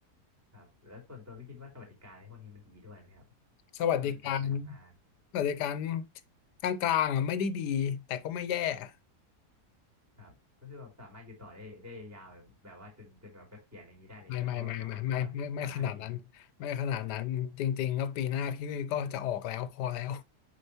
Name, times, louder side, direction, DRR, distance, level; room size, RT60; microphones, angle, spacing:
voice 1, 0.5-3.2 4.0-4.9 10.2-10.3 10.6-15.3 15.6-16.1, left 3 dB, 10° right, 3.1 m, -50 dB
voice 2, 3.7-4.7 5.3-6.1 6.6-8.9 14.3-20.2, left 9 dB, 85° left, 1.3 m, -32 dB
6.7 x 5.8 x 2.8 m
omnidirectional pair, 1.7 m